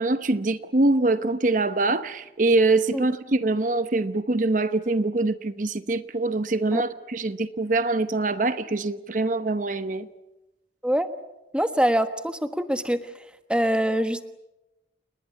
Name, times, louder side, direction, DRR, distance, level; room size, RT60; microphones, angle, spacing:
voice 1, 0.0-10.1, right 2 dB, 45° right, 0.9 m, -24 dB
voice 2, 11.5-13.0 13.5-14.2, equal, 5° right, 1.3 m, -24 dB
29.5 x 20.0 x 8.4 m
head